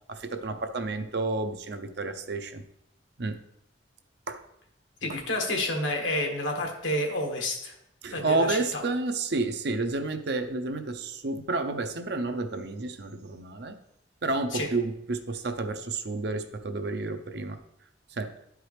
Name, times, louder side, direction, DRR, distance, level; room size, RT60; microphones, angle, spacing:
voice 1, 0.1-2.6 3.2-3.4 4.3-4.4 8.0-13.7 14.2-17.6 18.2-18.3, right 3 dB, 60° right, 8 dB, 0.6 m, -30 dB
voice 2, 5.0-7.7 8.1-8.8 14.5-14.7, left 1 dB, 85° left, 2 dB, 1.6 m, -29 dB
12.0 x 4.7 x 3.3 m, 0.77 s
head